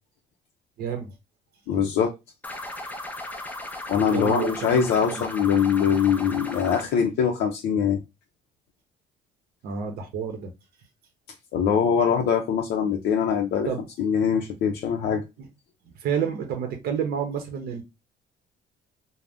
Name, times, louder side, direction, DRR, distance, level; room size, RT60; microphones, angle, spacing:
voice 1, 0.8-1.1 4.1-5.2 9.6-10.5 13.7-13.9 16.0-17.8, right 7 dB, 65° right, 0.7 m, -29 dB
voice 2, 1.7-2.1 3.9-8.0 11.5-13.7 14.0-15.2, left 7 dB, 70° left, 0.5 m, -23 dB
sound 1, 2.4-6.8, left 1 dB, 10° left, 0.4 m, -36 dB
2.5 x 2.1 x 3.3 m
cardioid pair, 110°, 17 cm